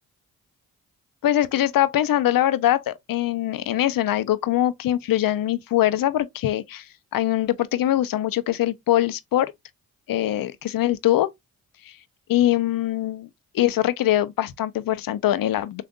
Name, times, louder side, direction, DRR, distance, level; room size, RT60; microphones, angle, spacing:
voice 1, 1.2-6.8 7.1-9.5 10.1-11.3 11.9-12.0 12.3-13.3 13.5-15.8, left 13 dB, 70° left, 0.6 m, -22 dB
6.4 x 2.5 x 2.4 m
supercardioid pair, 50°, 35 cm